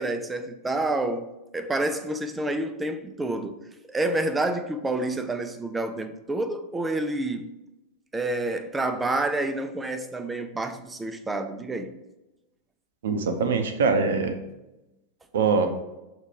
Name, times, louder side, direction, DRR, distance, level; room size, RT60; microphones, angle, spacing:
voice 1, 0.0-3.6 3.9-7.5 8.1-12.0, right 2 dB, 10° right, 0.5 m, -28 dB
voice 2, 13.0-14.3 15.3-15.7, right 4 dB, 60° right, 0.7 m, -23 dB
6.5 x 3.0 x 4.8 m
figure-of-eight pair, 90°, 0 cm